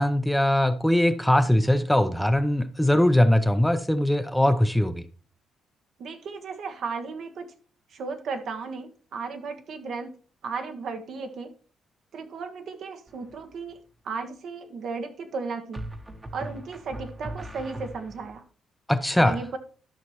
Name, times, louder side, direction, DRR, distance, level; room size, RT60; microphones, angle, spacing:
voice 1, 0.0-5.0 18.9-19.4, left 1 dB, 5° left, 0.6 m, -21 dB
voice 2, 6.0-7.5 7.9-10.1 10.4-11.5 12.1-13.8 14.0-15.9 16.3-18.4 19.1-19.6, right 4 dB, 65° right, 1.3 m, -35 dB
sound 1, 13.1-13.5 15.7-18.4, right 1 dB, 20° right, 1.1 m, -39 dB
12.5 x 5.6 x 3.1 m
cardioid pair, 90°, 0 cm